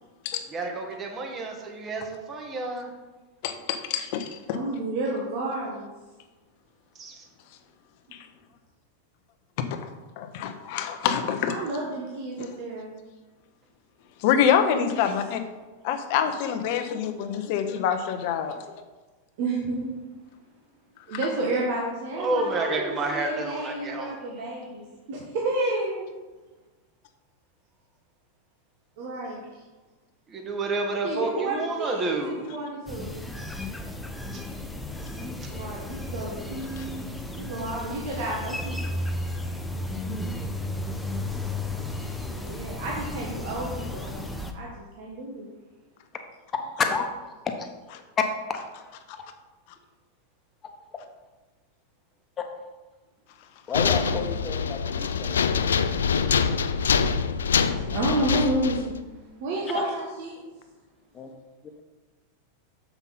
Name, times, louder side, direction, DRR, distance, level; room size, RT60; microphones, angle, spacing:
voice 1, 0.5-2.9 7.0-7.2 22.2-24.1 30.3-32.5, right 2 dB, 30° right, 2 dB, 1.5 m, -30 dB
voice 2, 3.4-4.6 9.8-9.9 10.2-11.5 12.4-12.5 14.2-15.4 15.8-18.6 36.8-36.9, left 8 dB, 60° left, 8 dB, 0.8 m, -26 dB
voice 3, 4.5-5.9 11.5-12.9 14.6-15.0 19.4-19.9 21.1-26.0 29.0-29.5 31.0-33.2 35.5-37.1 37.3-39.0 42.2-44.2 44.5-45.5 54.1-54.3 57.6-59.0 59.4-60.4, right 2 dB, 60° right, -3 dB, 1.4 m, -31 dB
sound 1, 32.9-44.5, left 1 dB, 5° left, 0.7 m, -34 dB
sound 2, 53.7-58.9, left 6 dB, 85° left, 0.4 m, -24 dB
voice 4, 53.7-56.0 59.7-59.8 61.1-61.3, left 4 dB, 25° left, 4 dB, 1.1 m, -31 dB
7.0 x 5.6 x 4.1 m, 1.2 s
hypercardioid pair, 105°, 0 cm